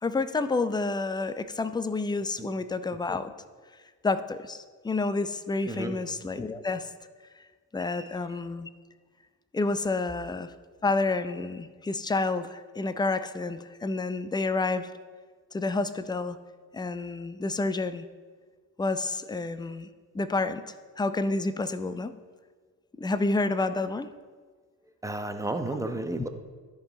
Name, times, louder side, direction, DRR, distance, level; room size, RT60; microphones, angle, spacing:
voice 1, 0.0-3.3 4.0-6.9 7.7-8.7 9.5-10.5 10.8-14.9 15.5-16.4 16.7-18.1 18.8-19.9 20.1-20.6 21.0-22.1 23.0-24.1, left 3 dB, 10° left, 12 dB, 0.5 m, -29 dB
voice 2, 5.7-6.0 7.9-8.1 25.0-26.3, right 2 dB, 5° right, 6 dB, 1.0 m, -32 dB
13.5 x 5.4 x 4.1 m, 1.5 s
hypercardioid pair, 50°, 47 cm